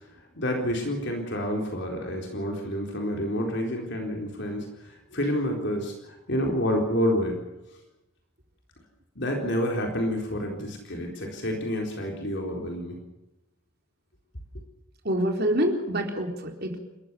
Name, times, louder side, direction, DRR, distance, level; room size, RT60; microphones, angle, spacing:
voice 1, 0.3-7.4 9.2-13.0, equal, 55° left, 1 dB, 4.2 m, -29 dB
voice 2, 15.0-16.8, equal, 45° right, 3 dB, 4.1 m, -26 dB
29.5 x 14.5 x 7.1 m, 0.97 s
head